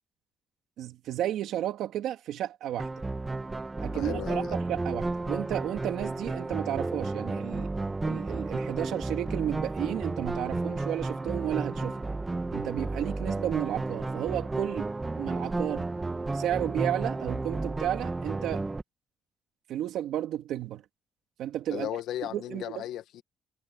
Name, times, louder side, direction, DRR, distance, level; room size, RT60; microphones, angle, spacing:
voice 1, 0.8-3.0 3.8-7.7 8.0-12.1 12.5-15.9 16.3-18.7 19.7-20.8 21.4-21.9 22.2-22.8, right 12 dB, 80° right, 2.7 m, -33 dB
sound 1, 2.8-18.8, right 3 dB, 20° right, 1.6 m, -32 dB
voice 2, 3.9-4.5 21.7-23.2, left 12 dB, 85° left, 1.7 m, -36 dB
cardioid pair, 90°, 0 cm